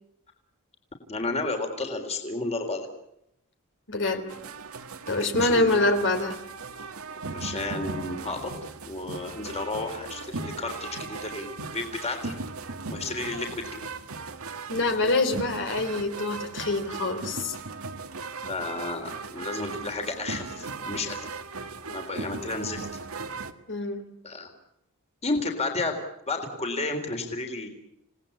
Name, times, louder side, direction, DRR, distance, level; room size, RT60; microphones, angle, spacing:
voice 1, 1.1-2.9 5.4-5.9 7.3-8.5 8.8-12.4 12.9-13.9 18.5-21.3 21.9-22.9 24.2-24.5 25.2-26.0 26.3-27.7, left 3 dB, 30° left, 4 dB, 3.7 m, -32 dB
voice 2, 3.9-4.3 5.1-6.4 14.7-17.6 23.7-24.0, left 2 dB, 60° left, 6 dB, 3.2 m, -25 dB
sound 1, 4.3-23.5, right 4 dB, 70° right, 1.8 m, -38 dB
29.0 x 18.5 x 8.6 m, 0.81 s
head